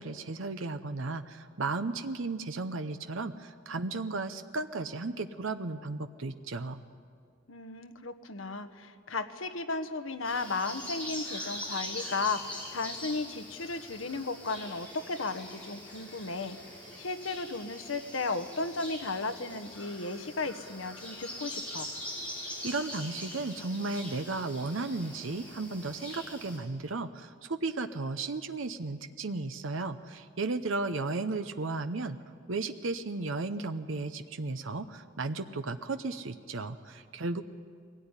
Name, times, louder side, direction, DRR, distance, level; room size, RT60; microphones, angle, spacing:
voice 1, 0.0-6.8 22.6-32.2 32.5-37.4, right 3 dB, 75° right, 8 dB, 0.8 m, -34 dB
voice 2, 7.5-16.6 17.0-21.9, left 3 dB, 85° left, 9 dB, 1.2 m, -35 dB
sound 1, 10.2-26.6, left 1 dB, 5° left, 6.2 m, -43 dB
22.0 x 17.0 x 9.8 m, 2.1 s
head